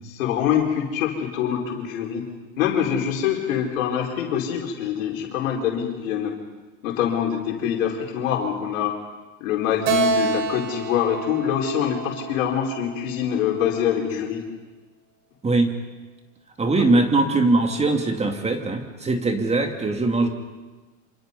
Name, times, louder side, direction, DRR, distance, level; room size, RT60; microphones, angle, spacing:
voice 1, 0.0-2.2 2.6-6.3 6.8-8.9 9.4-14.4 16.8-17.0, left 9 dB, 80° left, 0 dB, 4.8 m, -25 dB
Keyboard (musical), 9.8-13.3, right 4 dB, 70° right, 5.1 m, -27 dB
voice 2, 16.6-20.3, right 2 dB, 15° right, 5 dB, 2.7 m, -21 dB
27.0 x 26.5 x 5.5 m, 1.2 s
supercardioid pair, 110°, 40 cm